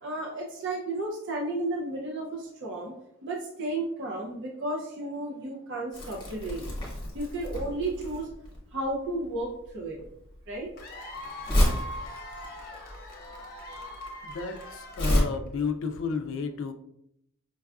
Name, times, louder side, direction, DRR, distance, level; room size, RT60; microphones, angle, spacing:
voice 1, 0.0-2.9 3.2-6.7 7.1-8.3 8.7-10.0 10.5-10.7 13.7-13.8, right 2 dB, 55° right, -1 dB, 0.5 m, -33 dB
Crumpling crinkling, 5.9-15.2, left 1 dB, 20° left, 1.1 m, -30 dB
Cheering / Applause / Crowd, 10.8-15.5, left 1 dB, 45° left, 0.7 m, -42 dB
voice 2, 14.2-16.7, left 5 dB, 60° left, 7 dB, 0.3 m, -32 dB
5.2 x 2.3 x 2.3 m, 0.78 s
head